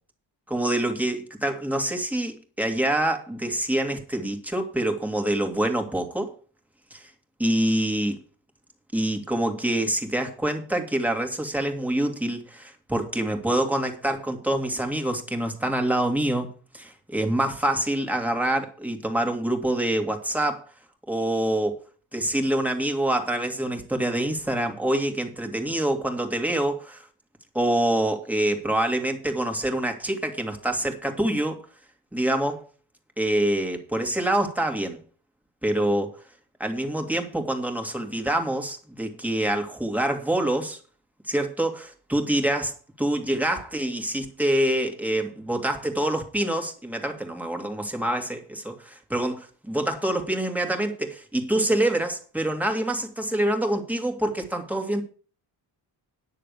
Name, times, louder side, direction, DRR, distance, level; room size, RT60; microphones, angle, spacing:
voice 1, 0.5-6.3 6.9-7.1 7.4-8.2 8.9-20.7 21.1-21.8 22.1-27.1 27.5-31.7 32.1-32.6 33.2-35.0 35.6-36.1 36.6-40.8 41.3-55.0, right 1 dB, 5° right, 2.2 m, -26 dB
10.0 x 6.7 x 6.7 m
cardioid pair, 110°, 42 cm